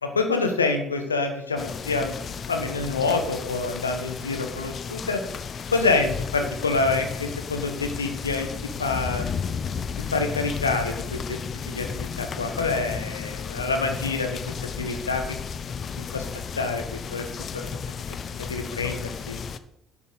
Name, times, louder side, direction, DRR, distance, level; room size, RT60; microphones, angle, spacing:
voice 1, 0.0-5.2 5.7-8.5 8.8-9.2 10.1-11.4 11.7-15.2 16.1-16.3 16.6-17.2 17.5-17.7 18.4-19.4, left 3 dB, 90° left, 5 dB, 1.2 m, -27 dB
sound 1, 1.6-19.6, left 6 dB, 45° left, 0.7 m, -33 dB
10.5 x 6.0 x 6.7 m, 0.78 s
figure-of-eight pair, 55°, 0 cm